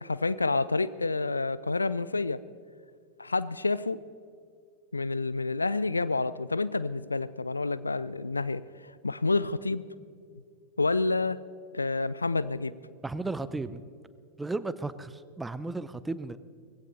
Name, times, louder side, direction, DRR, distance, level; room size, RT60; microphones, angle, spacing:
voice 1, 0.0-2.4 3.2-4.0 4.9-8.6 9.0-9.9 10.8-11.4 11.7-12.7, left 3 dB, 80° left, 17 dB, 0.4 m, -28 dB
voice 2, 13.0-13.8 14.4-16.4, right 3 dB, 10° right, 14 dB, 0.6 m, -34 dB
20.0 x 16.0 x 4.0 m, 2.2 s
figure-of-eight pair, 90°, 0 cm